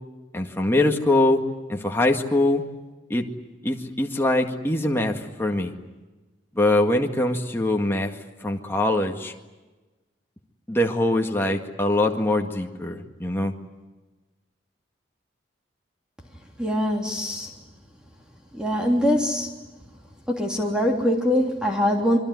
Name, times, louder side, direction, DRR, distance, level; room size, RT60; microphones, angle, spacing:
voice 1, 0.3-1.4 1.7-2.6 3.1-3.3 3.6-5.7 6.6-9.3 10.7-13.5, left 1 dB, 15° left, 2 dB, 1.9 m, -23 dB
voice 2, 16.6-17.5 18.5-19.5 20.3-22.2, equal, 5° right, 1 dB, 3.2 m, -23 dB
26.5 x 23.5 x 9.6 m, 1.2 s
head